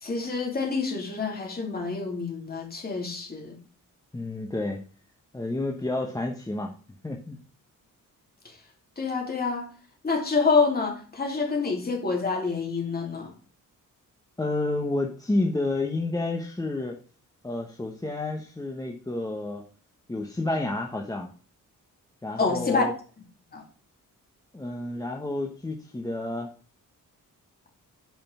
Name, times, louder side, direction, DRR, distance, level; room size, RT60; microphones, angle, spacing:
voice 1, 0.0-3.6 8.4-8.6 9.0-9.7 10.0-13.3 22.4-22.9 23.5-23.6, left 4 dB, 30° left, 2.8 m, -27 dB
voice 2, 4.1-4.8 5.3-6.7 7.0-7.4 14.4-16.9 17.4-19.6 20.1-21.3 22.2-22.9 24.5-26.5, left 2 dB, 10° left, 1.0 m, -30 dB
9.1 x 5.3 x 5.4 m
wide cardioid pair, 160°, 33 cm